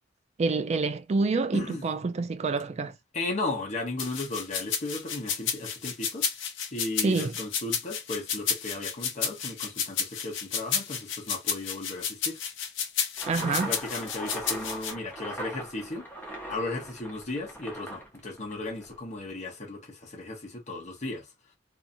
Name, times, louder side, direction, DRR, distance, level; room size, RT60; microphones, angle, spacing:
voice 1, 0.4-2.9 7.0-7.3 13.3-13.7, right 3 dB, 35° right, 0.4 m, -27 dB
voice 2, 1.5-1.8 3.1-6.3 6.7-12.4 13.4-16.1 16.5-21.3, left 2 dB, 40° left, 1.0 m, -35 dB
sound 1, 4.0-14.9, left 7 dB, 70° left, 0.7 m, -31 dB
sound 2, 13.2-19.0, right 1 dB, 10° left, 0.8 m, -40 dB
2.7 x 2.5 x 2.6 m
head